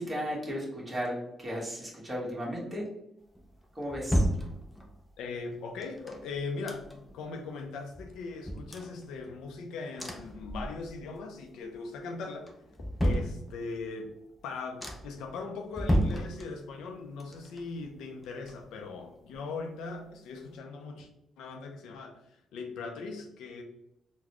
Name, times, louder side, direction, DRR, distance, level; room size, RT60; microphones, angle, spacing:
voice 1, 0.0-2.9 3.7-4.3, equal, 20° right, -4 dB, 1.4 m, -35 dB
sound 1, 3.4-5.1 5.8-7.2 7.6-7.7 7.9-9.6 10.0-11.2 11.5-12.0 12.4-13.9 14.4-14.5 14.8-15.3 15.7-16.9 17.2-19.0 19.3-19.4, equal, 5° left, 0.6 m, -33 dB
voice 2, 5.2-12.5 13.0-14.1 14.4-21.1 21.4-23.6, left 4 dB, 85° left, 3 dB, 0.5 m, -40 dB
4.0 x 2.2 x 3.0 m, 0.80 s
cardioid pair, 90°, 0 cm